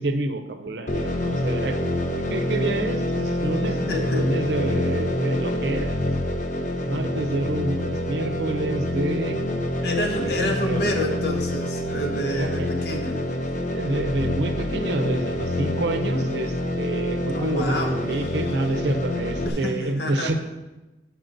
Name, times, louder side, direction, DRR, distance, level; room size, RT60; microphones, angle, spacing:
voice 1, 0.0-1.9 2.3-3.7 4.1-6.0 6.8-9.4 10.1-11.0 12.3-12.7 13.7-20.4, right 2 dB, 70° right, 7 dB, 0.6 m, -28 dB
sound 1, 0.9-19.5, left 1 dB, 40° left, 0.6 m, -26 dB
voice 2, 3.9-4.3 9.8-13.2 17.3-18.5 19.4-20.4, left 1 dB, 60° left, 3 dB, 0.9 m, -28 dB
7.9 x 4.8 x 3.9 m, 1.1 s
head